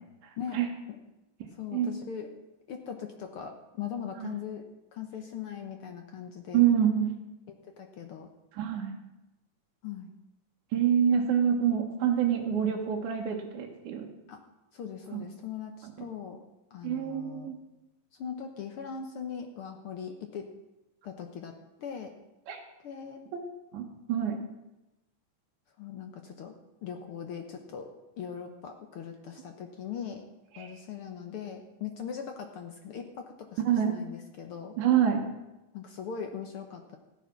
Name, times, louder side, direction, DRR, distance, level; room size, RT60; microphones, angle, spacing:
voice 1, 0.2-0.7 1.7-1.9 4.2-4.3 6.5-7.1 8.5-8.9 10.7-14.1 15.1-15.2 15.8-15.9 16.8-17.6 22.5-22.6 23.3-23.4 23.7-24.4 30.5-30.7 33.6-34.0 34.8-35.2, right 9 dB, 70° right, 0 dB, 2.6 m, -27 dB
voice 2, 1.5-2.3 2.7-4.6 4.9-6.6 7.6-8.3 9.8-10.1 14.3-14.4 14.7-16.4 16.7-17.5 18.1-20.5 21.0-22.1 22.8-23.2 25.8-26.5 26.8-27.9 28.2-30.2 30.6-34.7 35.7-37.0, left 7 dB, 75° left, 5 dB, 1.3 m, -40 dB
14.5 x 9.9 x 5.9 m, 0.99 s
omnidirectional pair, 3.7 m